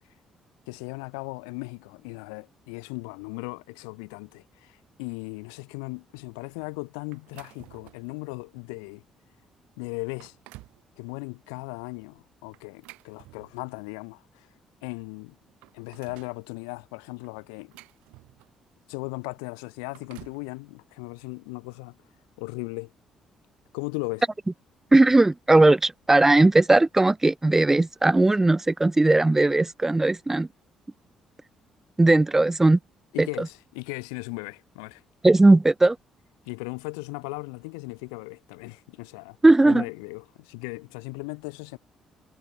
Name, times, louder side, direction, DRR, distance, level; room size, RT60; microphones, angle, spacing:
voice 1, 0.7-9.0 9.8-10.4 11.0-14.5 14.8-15.4 15.7-17.7 18.9-22.0 22.4-22.9 23.7-24.2 33.1-35.0 36.5-39.4 39.6-41.8, left 37 dB, 70° left, 2.2 m, -37 dB
sound 1, 7.1-8.2 8.7-8.9 9.5-9.6 10.0-10.8 12.5-13.9 14.9-15.0 15.3-16.4 17.2-18.7 19.7-20.5, right 21 dB, 70° right, 5.2 m, -51 dB
voice 2, 24.9-30.5 32.0-32.8 33.2-33.3 35.2-36.0 39.4-39.8, right 2 dB, 15° right, 0.6 m, -18 dB
figure-of-eight pair, 45°, 2 cm